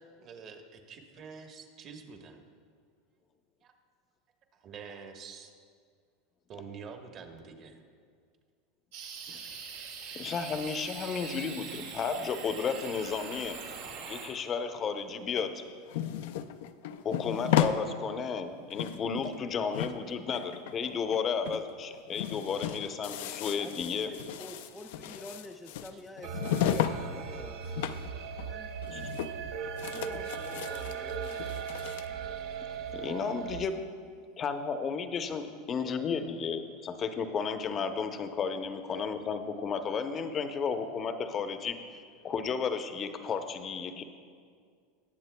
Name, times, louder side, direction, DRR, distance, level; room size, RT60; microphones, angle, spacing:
voice 1, 0.2-2.4 3.6-3.7 4.6-5.5 6.5-7.8 9.3-9.4 25.9-26.0, right 5 dB, 45° right, 4 dB, 1.2 m, -47 dB
sound 1, 8.9-14.3, right 6 dB, 80° right, 2.4 m, -43 dB
voice 2, 10.1-13.6 14.1-15.6 17.0-24.1 28.9-29.0 32.9-33.9 34.4-44.0, left 5 dB, 35° left, 8 dB, 0.7 m, -33 dB
sound 2, 15.4-17.8 18.2-18.3 18.6-19.5 19.7-21.2 21.4-21.6 21.9-27.0 27.3-28.1 28.4-28.5 28.8-29.5 29.8-32.1, left 10 dB, 70° left, 0.4 m, -34 dB
voice 3, 23.5-28.7 29.8-31.7, left 1 dB, 10° left, 4 dB, 0.3 m, -48 dB
sound 3, 26.2-33.6, right 6 dB, 60° right, 0.7 m, -38 dB
19.0 x 7.4 x 2.2 m, 2.1 s
hypercardioid pair, 110°, 0 cm